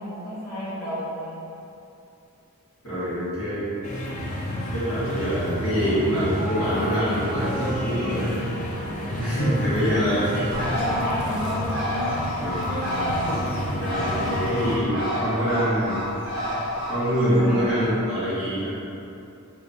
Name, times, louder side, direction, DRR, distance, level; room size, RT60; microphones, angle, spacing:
voice 1, 0.0-1.4 9.9-10.0 10.3-10.5 10.8-11.9 12.6-12.8 17.2-17.7, equal, 15° left, -15 dB, 1.4 m, -32 dB
voice 2, 2.8-4.0 4.7-8.4 9.1-10.5 12.4-12.8 13.4-16.0 16.5-16.6 16.9-18.7, equal, 65° left, -12 dB, 1.3 m, -25 dB
sound 1, 3.8-14.8, left 1 dB, 35° left, 0.4 m, -30 dB
sound 2, 6.4-17.5, right 1 dB, 40° right, 0.4 m, -37 dB
Bird, 10.5-17.9, equal, 85° left, 1.1 m, -30 dB
2.9 x 2.6 x 3.4 m, 2.8 s
head